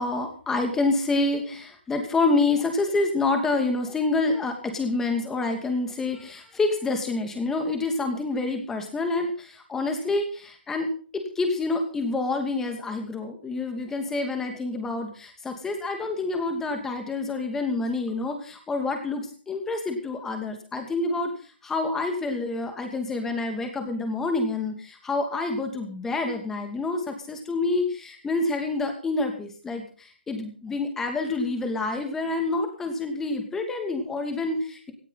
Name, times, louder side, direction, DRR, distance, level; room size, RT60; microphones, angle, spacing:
voice 1, 0.0-10.9 11.1-21.3 21.6-29.8 30.3-34.9, left 3 dB, 5° left, 5 dB, 2.6 m, -27 dB
18.0 x 15.0 x 4.2 m, 0.41 s
hypercardioid pair, 150°, 6 cm